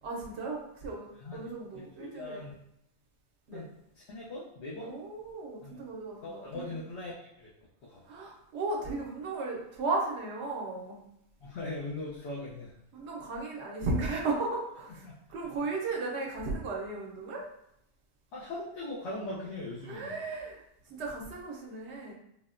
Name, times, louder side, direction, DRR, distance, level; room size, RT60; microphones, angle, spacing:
voice 1, 0.0-2.4 3.5-3.6 4.8-6.7 8.0-11.0 12.9-17.4 19.8-20.6 20.9-22.1, right 3 dB, 85° right, -2 dB, 1.0 m, -35 dB
voice 2, 1.7-2.5 3.5-3.7 4.1-4.9 5.6-5.8 6.2-7.5 7.8-8.0 11.4-12.7 15.0-15.1 18.3-20.1, left 2 dB, 80° left, -7 dB, 0.9 m, -40 dB
3.8 x 2.0 x 2.5 m, 0.78 s
omnidirectional pair, 1.1 m